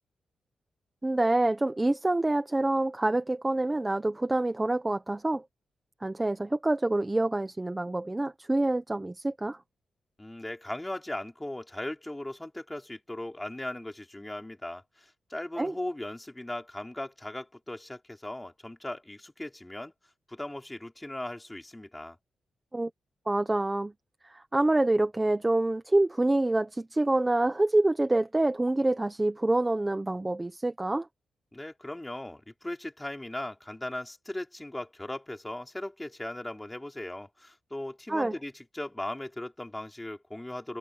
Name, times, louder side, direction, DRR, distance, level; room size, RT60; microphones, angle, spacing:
voice 1, 1.0-5.4 6.0-9.6 15.6-15.7 22.7-22.9 23.3-23.9 24.2-31.1 38.1-38.3, right 2 dB, 15° right, 1.0 m, -26 dB
voice 2, 10.2-19.9 20.3-22.2 31.5-40.8, left 1 dB, 10° left, 4.1 m, -38 dB
wide cardioid pair, 155°, 0 cm